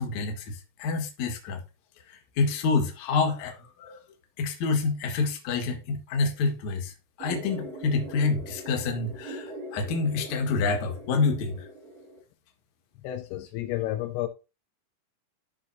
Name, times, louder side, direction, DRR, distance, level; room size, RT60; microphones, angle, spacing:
voice 1, 0.0-1.6 2.1-4.0 4.4-6.9 7.2-11.6, left 4 dB, 55° left, 2.4 m, -27 dB
sound 1, 7.2-12.2, right 1 dB, 90° right, 4.5 m, -42 dB
voice 2, 13.0-14.3, left 14 dB, 80° left, 2.9 m, -31 dB
13.0 x 5.7 x 2.7 m
omnidirectional pair, 4.8 m